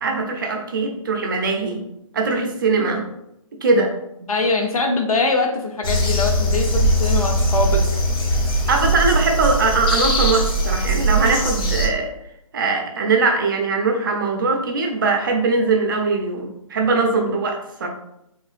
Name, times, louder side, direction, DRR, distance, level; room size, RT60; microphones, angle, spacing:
voice 1, 0.0-1.8 2.1-3.1 3.6-3.9 4.2-4.3 8.7-12.1 12.5-17.9, right 3 dB, 40° right, 3 dB, 0.5 m, -21 dB
voice 2, 4.3-7.8, left 3 dB, 85° left, 2 dB, 0.7 m, -22 dB
sound 1, 5.8-11.9, right 1 dB, 45° left, 0.8 m, -20 dB
3.5 x 3.1 x 2.4 m, 0.81 s
hypercardioid pair, 160°, 18 cm